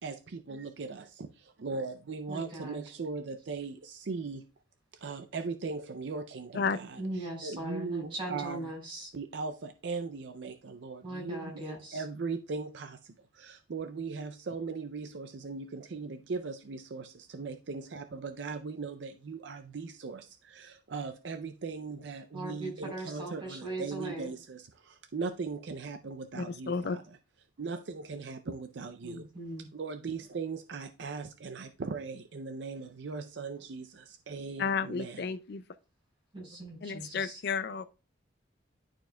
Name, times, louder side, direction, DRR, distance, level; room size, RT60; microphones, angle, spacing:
voice 1, 0.0-4.5 5.0-8.7 9.1-27.2 27.6-29.3 29.7-35.4, right 4 dB, 65° right, 0.5 m, -39 dB
voice 2, 2.3-2.8 7.0-9.1 11.0-12.0 22.3-24.3 29.0-29.7 36.3-37.4, right 1 dB, 25° right, 4.1 m, -39 dB
voice 3, 26.3-27.0 34.6-35.6 36.8-37.8, left 5 dB, 55° left, 0.4 m, -32 dB
11.5 x 4.4 x 2.3 m
head